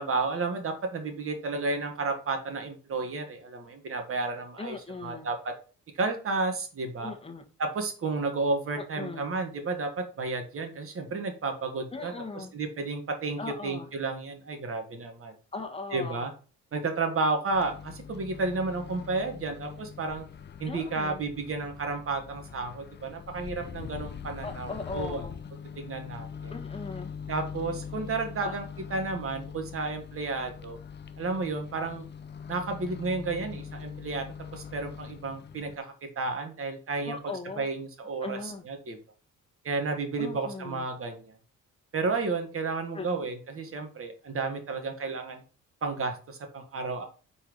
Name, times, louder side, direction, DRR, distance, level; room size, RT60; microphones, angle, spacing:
voice 1, 0.0-4.8 5.0-5.5 5.9-7.1 7.6-15.4 15.9-16.3 16.7-20.2 20.6-25.2 25.7-26.5 27.3-28.6 28.9-30.8 31.2-32.0 32.5-34.3 34.5-35.8 36.1-39.0 39.6-41.4 41.9-45.4 45.8-47.0, right 3 dB, 45° right, 5 dB, 1.6 m, -32 dB
voice 2, 4.6-5.3 7.0-7.4 8.7-9.3 11.9-12.5 13.4-13.9 15.5-16.3 20.7-21.2 24.4-25.5 26.5-27.1 28.4-28.5 37.0-37.7 38.2-38.7 40.2-40.9 42.9-43.1, left 3 dB, 20° left, 3 dB, 1.3 m, -39 dB
Microwave oven, 17.5-35.8, left 7 dB, 35° left, 0.6 m, -42 dB
4.6 x 4.2 x 5.1 m, 0.37 s
cardioid pair, 90°, 30 cm